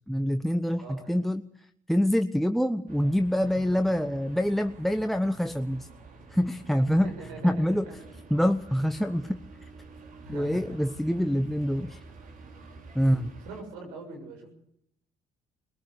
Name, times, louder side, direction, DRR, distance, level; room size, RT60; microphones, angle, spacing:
voice 1, 0.1-1.4 1.9-5.9 6.3-7.1 7.4-7.9 8.3-9.7 10.3-12.0 12.9-13.4, equal, ahead, 8 dB, 1.0 m, -26 dB
voice 2, 0.8-1.2 3.4-3.8 7.0-7.9 10.2-10.8 11.1-11.2 13.0-14.5, right 3 dB, 90° right, 3 dB, 7.3 m, -43 dB
sound 1, 2.9-13.6, right 4 dB, 60° right, 5.2 m, -49 dB
22.0 x 17.5 x 8.3 m, 0.74 s
supercardioid pair, 65°, 16 cm